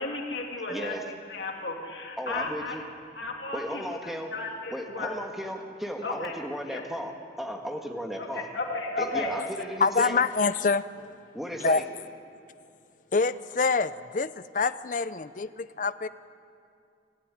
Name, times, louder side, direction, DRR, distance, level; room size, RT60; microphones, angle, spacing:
voice 1, 0.0-2.8 3.2-5.5 6.0-6.3 6.7-6.8 8.2-9.6, left 2 dB, 70° left, 0 dB, 2.1 m, -34 dB
voice 2, 0.7-1.0 2.2-2.8 3.5-4.3 4.7-8.4 9.0-10.2 11.3-11.8, equal, ahead, 2 dB, 1.6 m, -35 dB
voice 3, 9.8-11.1 11.6-11.8 13.1-16.1, left 4 dB, 45° left, 14 dB, 0.5 m, -26 dB
25.0 x 14.5 x 9.9 m, 2.4 s
head